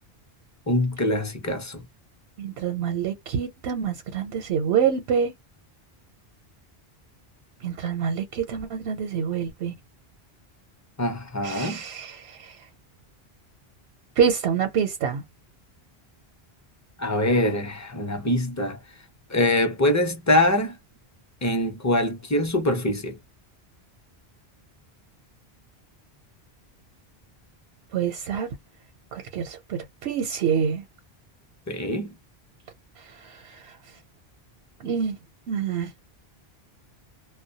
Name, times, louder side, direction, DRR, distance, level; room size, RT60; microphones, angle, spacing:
voice 1, 0.7-1.8 11.0-11.8 17.0-18.8 19.3-20.8 21.4-23.2 31.7-32.1, left 1 dB, 20° left, 0.5 m, -24 dB
voice 2, 2.4-5.3 7.6-9.7 11.4-12.6 14.2-15.2 27.9-28.5 29.1-30.8 33.2-33.8 34.8-35.2 35.5-35.9, right 7 dB, 85° right, 0.9 m, -26 dB
2.2 x 2.1 x 2.7 m
omnidirectional pair, 1.1 m